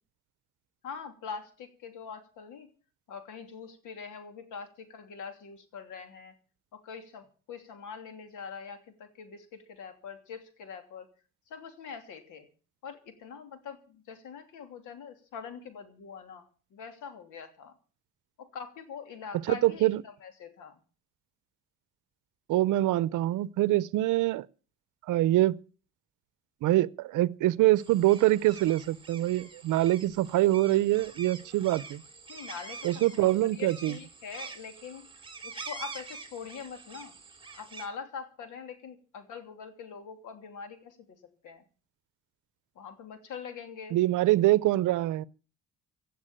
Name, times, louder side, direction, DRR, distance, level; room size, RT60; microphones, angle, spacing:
voice 1, 0.8-2.7 3.1-6.3 6.8-11.1 11.5-12.5 12.8-17.7 18.4-20.8 32.3-35.1 35.4-37.1 37.5-41.6 42.7-44.0, left 6 dB, 85° left, 3.0 m, -43 dB
voice 2, 19.5-20.0 22.5-24.5 25.1-25.6 26.6-32.0 32.8-33.9 43.9-45.2, right 16 dB, 85° right, 0.7 m, -24 dB
sound 1, 27.8-37.9, right 4 dB, 15° right, 2.6 m, -46 dB
17.0 x 7.1 x 8.9 m
cardioid pair, 90°, 30 cm